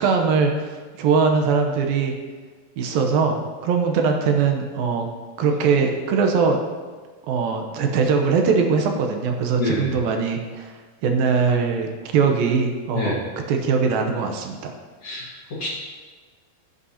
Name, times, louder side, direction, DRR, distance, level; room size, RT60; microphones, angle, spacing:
voice 1, 0.0-2.1 2.8-5.1 5.4-6.6 7.3-10.7 11.0-13.2 13.5-14.7, right 5 dB, 80° right, 3 dB, 2.6 m, -21 dB
voice 2, 9.6-9.9 12.9-13.2 15.0-15.7, left 2 dB, 50° left, -5 dB, 2.1 m, -27 dB
16.0 x 8.3 x 2.8 m, 1.4 s
omnidirectional pair, 4.2 m